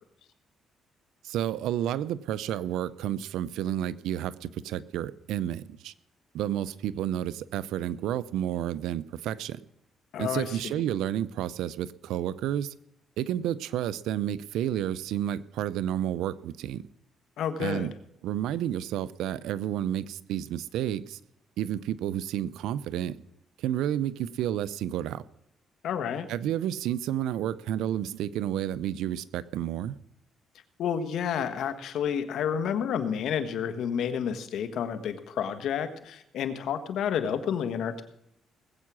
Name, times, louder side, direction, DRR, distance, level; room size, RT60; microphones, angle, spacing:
voice 1, 1.2-5.9 6.3-9.6 10.2-12.7 13.2-16.9 17.6-17.9 18.2-21.2 21.6-23.1 23.6-25.2 26.3-30.0, right 11 dB, 90° right, 0.6 m, -31 dB
voice 2, 10.1-10.6 17.4-17.9 25.8-26.3 30.8-38.0, left 8 dB, 75° left, 1.6 m, -30 dB
19.5 x 8.4 x 6.2 m
cardioid pair, 90°, 0 cm